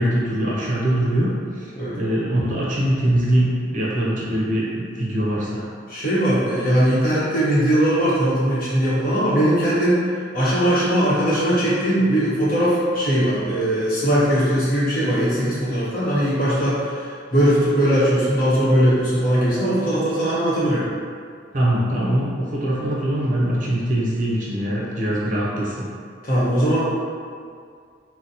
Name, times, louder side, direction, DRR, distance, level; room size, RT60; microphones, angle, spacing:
voice 1, 0.0-1.3 1.6-1.7 1.9-5.6 21.5-25.9, right 1 dB, 45° right, -6 dB, 0.6 m, -22 dB
voice 2, 5.9-10.0 10.3-17.0 17.3-20.9 26.2-26.8, equal, 50° left, -9 dB, 1.0 m, -19 dB
3.9 x 2.1 x 2.8 m, 2.2 s
head